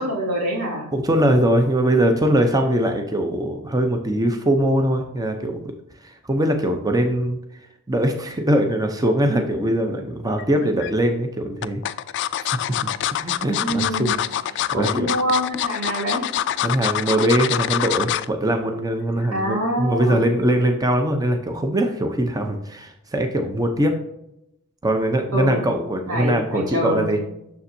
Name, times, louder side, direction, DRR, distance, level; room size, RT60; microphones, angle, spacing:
voice 1, 0.0-0.9 13.6-14.1 14.7-16.3 19.3-20.2 25.3-25.6 26.1-27.2, equal, 80° right, -3 dB, 2.7 m, -25 dB
voice 2, 0.9-5.6 6.0-7.4 7.9-11.8 12.4-12.5 13.2-14.2 14.5-15.1 16.6-24.0 24.8-27.2, right 1 dB, 15° right, 4 dB, 0.6 m, -21 dB
sound 1, 10.4-10.9 11.6-18.3 18.7-18.9 19.2-19.3, left 11 dB, 55° left, 0.3 m, -25 dB
7.0 x 6.7 x 2.7 m, 0.82 s
head